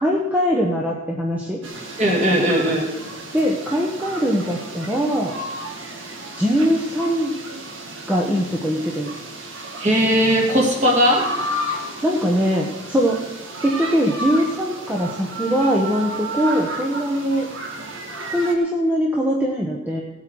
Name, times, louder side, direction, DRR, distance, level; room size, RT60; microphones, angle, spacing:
voice 1, 0.0-1.6 3.3-5.3 6.4-7.3 8.1-9.1 12.0-13.2 13.6-17.5 18.3-20.0, equal, 10° right, -2 dB, 1.0 m, -21 dB
sound 1, 1.6-18.5, right 1 dB, 70° right, 1.7 m, -32 dB
voice 2, 2.0-2.9 9.8-11.3, equal, 35° right, -1 dB, 2.7 m, -18 dB
17.0 x 8.2 x 4.7 m, 1.1 s
head